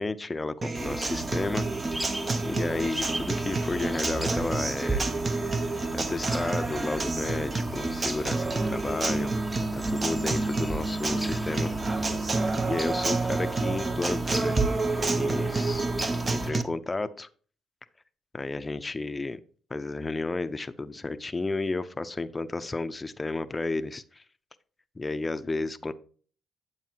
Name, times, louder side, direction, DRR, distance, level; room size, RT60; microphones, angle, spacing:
voice 1, 0.0-1.7 2.0-2.1 2.5-5.1 5.9-9.3 9.6-11.7 12.6-14.6 15.0-15.9 16.3-17.3 18.3-19.4 19.7-24.2 25.0-25.9, left 3 dB, 20° left, 11 dB, 0.6 m, -32 dB
Acoustic guitar, 0.6-16.6, right 3 dB, 30° right, 0.9 m, -29 dB
sound 1, 0.7-16.5, right 2 dB, 10° right, 1.0 m, -35 dB
9.2 x 8.0 x 2.9 m, 0.43 s
cardioid pair, 90°, 0 cm